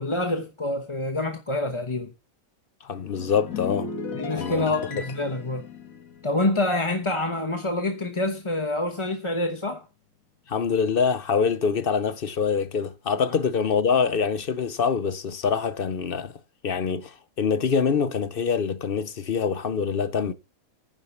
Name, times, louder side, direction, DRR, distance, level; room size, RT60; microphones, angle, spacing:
voice 1, 0.0-2.1 4.1-5.7 6.2-9.8, left 2 dB, 25° left, 1.1 m, -27 dB
voice 2, 2.8-3.9 4.4-4.7 10.5-20.3, left 6 dB, 50° left, 0.8 m, -25 dB
sound 1, 2.9-7.6 7.8-8.1, left 5 dB, 75° left, 1.9 m, -37 dB
10.0 x 7.7 x 7.1 m
omnidirectional pair, 1.5 m